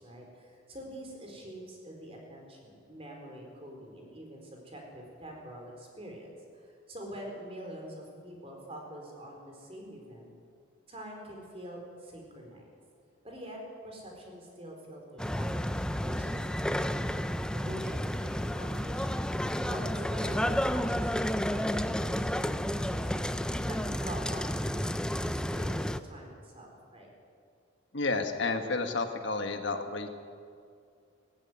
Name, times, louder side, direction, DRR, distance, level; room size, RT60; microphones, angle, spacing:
voice 1, 0.0-10.3 10.9-12.7 13.2-19.3 19.7-23.4 23.7-25.0 25.3-27.1, right 1 dB, 30° right, 1 dB, 4.5 m, -45 dB
sound 1, 15.2-26.0, equal, 5° left, 0.5 m, -31 dB
voice 2, 27.9-30.1, left 3 dB, 65° left, 6 dB, 1.5 m, -31 dB
19.5 x 14.5 x 9.7 m, 2.3 s
head